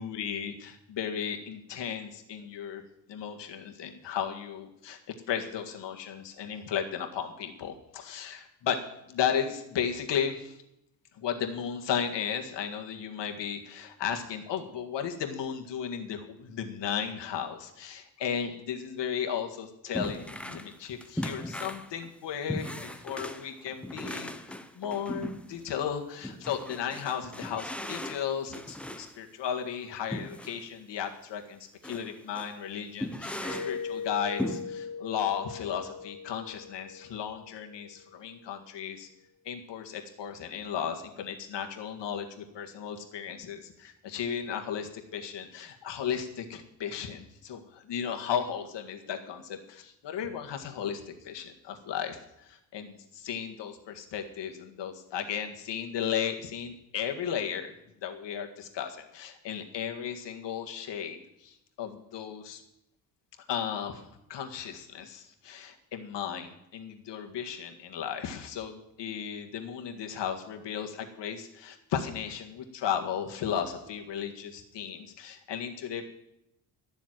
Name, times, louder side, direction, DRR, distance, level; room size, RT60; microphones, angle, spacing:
voice 1, 0.0-2.8 3.1-5.0 5.3-8.8 9.1-10.6 11.2-39.1 39.5-57.7 58.0-62.6 63.5-76.0, left 8 dB, 85° left, 4 dB, 1.8 m, -35 dB
sound 1, 19.9-20.8 21.0-25.7 26.2-29.2 30.1-30.6 31.0-31.1 31.8-32.1 32.4-32.5 33.0-33.8 34.4-34.6, left 1 dB, 5° left, 0.6 m, -38 dB
Mallet percussion, 33.4-38.0, left 5 dB, 15° right, 5.4 m, -40 dB
12.5 x 7.3 x 9.1 m, 0.83 s
wide cardioid pair, 165°, 42 cm